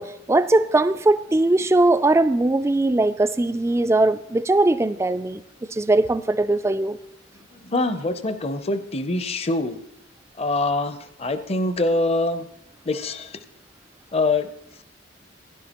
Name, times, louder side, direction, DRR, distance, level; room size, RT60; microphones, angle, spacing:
voice 1, 0.0-5.4 5.7-7.0, right 2 dB, 15° right, 13 dB, 0.3 m, -20 dB
voice 2, 7.5-9.8 10.4-12.5 12.9-13.4 14.1-14.5, left 2 dB, 30° left, 10 dB, 0.6 m, -24 dB
16.5 x 10.5 x 2.9 m, 0.77 s
head